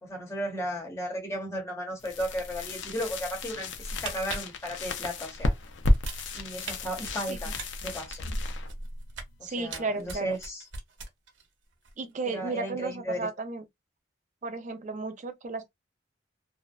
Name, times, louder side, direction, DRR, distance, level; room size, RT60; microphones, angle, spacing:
voice 1, 0.0-5.5 6.3-7.5 7.8-8.2 9.4-10.6 12.3-13.2, equal, 15° left, 0.8 m, -35 dB
sound 1, 2.0-9.7, left 1 dB, 75° left, 0.5 m, -32 dB
sound 2, 3.9-5.5 5.9-6.7 7.1-9.4 9.7-11.5 11.7-11.9, right 4 dB, 90° right, 0.7 m, -40 dB
voice 2, 7.3-7.6 9.4-10.4 12.0-13.6 14.4-15.7, right 3 dB, 40° right, 0.5 m, -34 dB
2.5 x 2.1 x 2.3 m
head